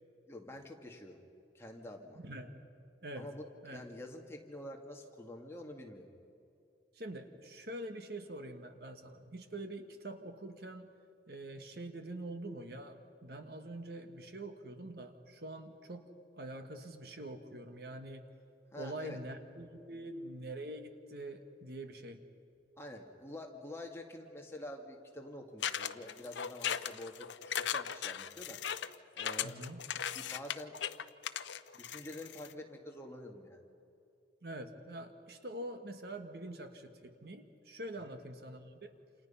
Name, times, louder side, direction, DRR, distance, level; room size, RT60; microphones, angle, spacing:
voice 1, 0.3-1.2 1.5-2.2 3.2-6.1 18.7-19.2 22.8-28.6 29.2-29.6 30.1-30.8 31.7-33.6 38.0-38.2, left 1 dB, 15° left, 1 dB, 2.2 m, -47 dB
voice 2, 2.1-2.5 3.0-3.3 3.6-3.8 6.9-10.9 11.3-16.1 16.4-18.2 18.7-22.2 29.4-29.8 34.4-38.9, right 1 dB, 55° right, 7 dB, 1.6 m, -45 dB
sound 1, 25.6-32.5, left 9 dB, 80° left, 0.7 m, -38 dB
29.0 x 28.0 x 5.7 m, 2.7 s
head